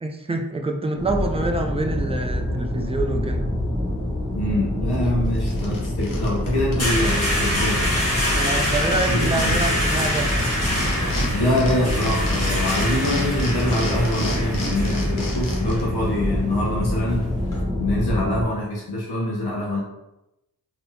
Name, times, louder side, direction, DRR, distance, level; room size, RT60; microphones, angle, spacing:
voice 1, 0.0-3.4 8.4-10.3, right 2 dB, 15° right, 4 dB, 0.4 m, -26 dB
sound 1, 1.0-18.4, left 1 dB, 10° left, 1.0 m, -26 dB
voice 2, 4.3-7.9 9.1-9.6 11.3-17.3 17.8-19.8, left 1 dB, 90° left, -4 dB, 0.8 m, -25 dB
sound 2, 4.9-5.0 5.3-7.3 7.5-7.6 7.8-11.3 11.6-15.8, left 1 dB, 60° left, 0.8 m, -32 dB
sound 3, 6.0-17.6, equal, 40° left, 1.4 m, -27 dB
3.7 x 2.8 x 2.6 m, 0.91 s
wide cardioid pair, 80°, 38 cm